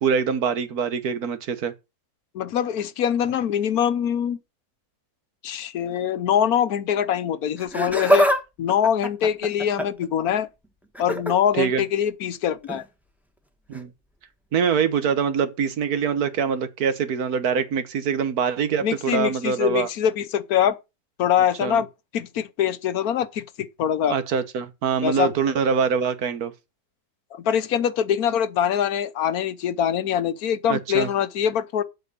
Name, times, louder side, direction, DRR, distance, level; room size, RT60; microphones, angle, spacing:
voice 1, 0.0-1.7 11.6-11.8 13.7-13.9 14.5-19.9 21.6-21.8 24.1-26.5 30.7-31.1, right 6 dB, 85° right, 1.6 m, -24 dB
voice 2, 2.3-4.4 5.4-8.3 8.6-10.5 11.0-12.8 18.8-20.8 21.2-21.9 22.1-24.2 25.0-25.3 27.3-31.8, left 9 dB, 85° left, 1.3 m, -23 dB
Laughter, 7.6-8.4 8.7-10.1 10.9-11.3 12.6-12.8 13.7-13.8, equal, ahead, 1.2 m, -23 dB
8.0 x 6.5 x 6.7 m
omnidirectional pair, 1.5 m